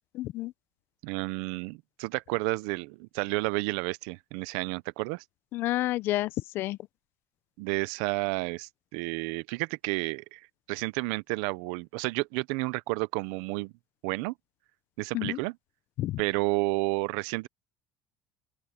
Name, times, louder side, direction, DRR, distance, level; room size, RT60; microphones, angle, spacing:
voice 1, 0.1-0.5 5.5-6.8 15.1-15.4 16.0-16.2, left 16 dB, 50° left, 0.5 m, -30 dB
voice 2, 1.0-5.2 7.6-10.4 10.7-13.7 14.0-14.3 15.0-15.6 16.2-17.5, right 24 dB, 90° right, 0.6 m, -31 dB
open air
cardioid pair, 160°, 5 cm